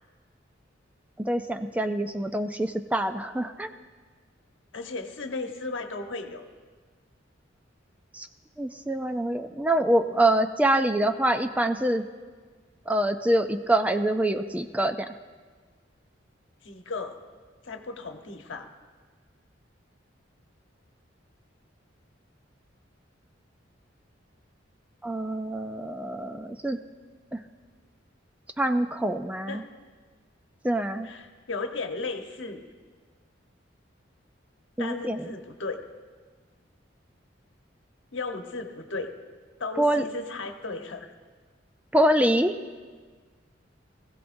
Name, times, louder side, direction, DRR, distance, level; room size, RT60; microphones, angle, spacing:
voice 1, 1.2-3.7 8.1-8.3 8.6-12.0 12.9-15.1 25.0-26.8 27.3-27.4 28.6-29.6 30.6-31.1 34.8-35.3 39.8-40.0 41.9-42.5, right 1 dB, 10° right, 7 dB, 0.4 m, -25 dB
voice 2, 4.7-6.4 16.6-17.2 17.6-18.7 29.5-29.7 31.0-32.6 34.8-35.8 38.1-39.1 39.6-41.1, left 3 dB, 75° left, 5 dB, 1.1 m, -35 dB
20.0 x 15.5 x 2.6 m, 1.5 s
head